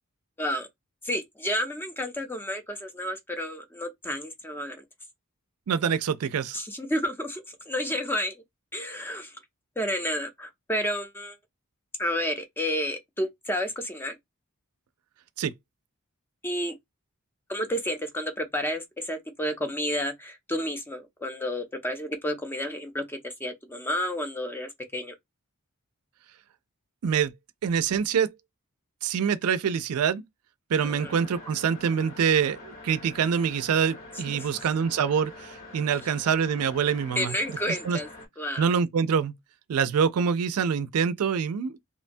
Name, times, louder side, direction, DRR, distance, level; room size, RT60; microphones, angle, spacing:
voice 1, 1.0-4.8 6.5-8.4 8.7-9.3 9.8-11.4 12.0-14.2 16.4-16.7 17.5-25.1 30.8-31.1 34.4-34.5 37.2-38.1 38.4-38.7, equal, 10° left, 0.5 m, -31 dB
voice 2, 5.7-6.6 15.4-15.5 27.0-27.3 27.6-28.3 29.0-30.2 30.7-37.4 37.8-38.0 38.6-39.3 39.7-41.8, right 7 dB, 85° right, 0.4 m, -25 dB
sound 1, 30.8-38.3, left 2 dB, 65° left, 1.3 m, -45 dB
2.9 x 2.2 x 2.5 m
head